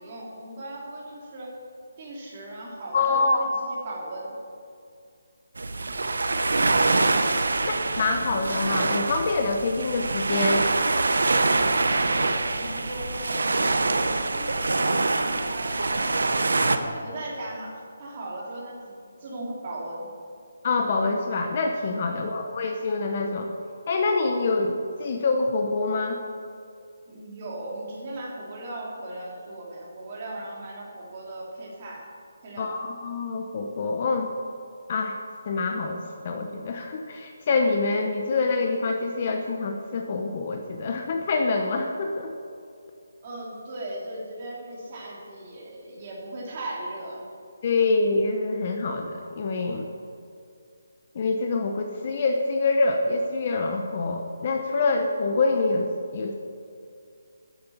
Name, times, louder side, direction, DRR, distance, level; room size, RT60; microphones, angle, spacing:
voice 1, 0.0-1.5 2.0-4.4 11.4-11.7 12.0-16.4 16.6-20.1 22.1-22.4 27.1-32.1 32.4-32.7 43.2-47.2, right 1 dB, 25° right, -4 dB, 3.1 m, -38 dB
voice 2, 2.9-3.5 8.0-10.7 20.6-23.5 23.9-26.2 32.6-34.3 34.9-35.2 35.5-36.0 36.2-42.3 47.6-49.9 51.1-56.3, left 3 dB, 30° left, 3 dB, 0.9 m, -26 dB
sound 1, 5.6-16.8, right 3 dB, 85° right, 1.2 m, -24 dB
13.0 x 9.4 x 7.1 m, 2.4 s
hypercardioid pair, 175°, 0 cm